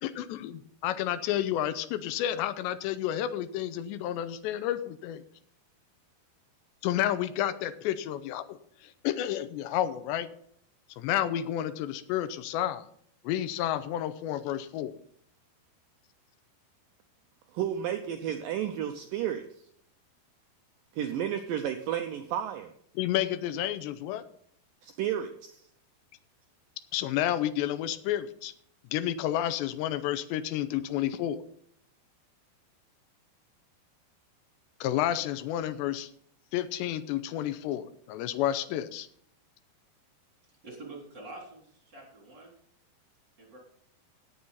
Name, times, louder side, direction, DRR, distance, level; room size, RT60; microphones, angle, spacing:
voice 1, 0.0-5.2 6.8-10.3 11.0-12.8 13.2-14.9 23.0-24.2 26.9-28.5 28.9-31.4 34.8-36.1 36.5-39.1, left 12 dB, 90° left, 12 dB, 3.0 m, -30 dB
voice 2, 17.5-19.5 20.9-22.7 24.8-25.6, right 10 dB, 85° right, 6 dB, 1.9 m, -32 dB
voice 3, 40.6-42.5 43.4-43.6, right 2 dB, 25° right, -1 dB, 3.7 m, -46 dB
17.5 x 7.3 x 4.1 m, 0.64 s
omnidirectional pair, 4.9 m